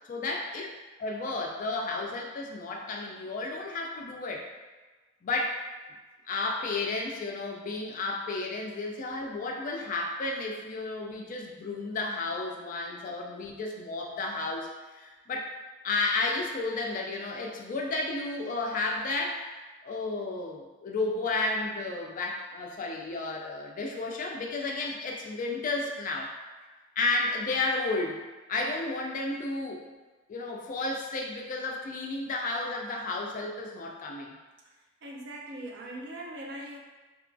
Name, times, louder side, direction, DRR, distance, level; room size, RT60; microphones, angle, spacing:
voice 1, 0.1-0.7 1.0-4.5 5.2-5.6 6.3-15.5 15.8-26.3 27.0-29.8 30.3-34.3, left 3 dB, 40° left, 0 dB, 0.3 m, -32 dB
voice 2, 35.0-36.8, right 1 dB, 60° right, 0 dB, 0.4 m, -42 dB
2.9 x 2.2 x 2.5 m, 1.3 s
head